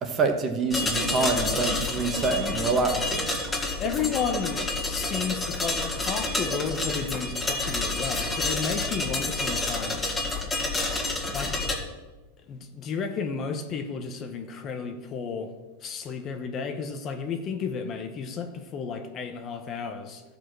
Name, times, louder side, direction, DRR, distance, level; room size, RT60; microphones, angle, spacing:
voice 1, 0.0-3.2, right 3 dB, 25° right, 5 dB, 1.3 m, -26 dB
sound 1, 0.7-11.8, left 2 dB, 10° left, 2.1 m, -29 dB
voice 2, 3.8-10.2 11.3-11.6 12.5-15.5 15.8-20.2, left 6 dB, 30° left, 7 dB, 0.9 m, -32 dB
14.0 x 5.0 x 6.2 m, 1.2 s
supercardioid pair, 145°, 0 cm